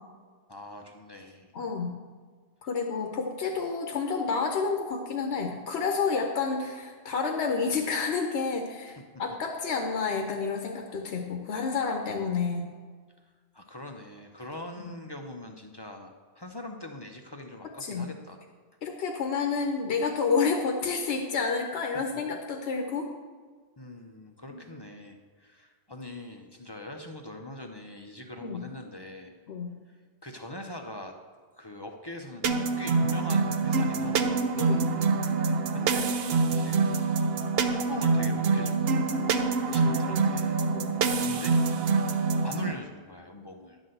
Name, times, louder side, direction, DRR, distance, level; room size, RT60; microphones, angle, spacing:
voice 1, 0.5-1.5 13.5-18.4 23.8-29.3 29.9-31.1 31.6-34.3 35.7-36.1 36.5-36.8 37.7-39.0 39.7-40.6 41.2-41.6 42.4-43.8, left 1 dB, 30° left, 3 dB, 0.5 m, -42 dB
voice 2, 1.5-2.0 2.6-12.6 14.8-14.9 17.8-18.1 18.8-23.1 24.5-24.6 28.4-28.7 29.5-29.8 34.6-34.9 39.6-40.3 40.7-40.9, left 5 dB, 75° left, 3 dB, 1.1 m, -30 dB
sound 1, 32.4-42.7, right 4 dB, 65° right, 0.8 m, -25 dB
10.5 x 4.1 x 7.7 m, 1.5 s
omnidirectional pair, 1.1 m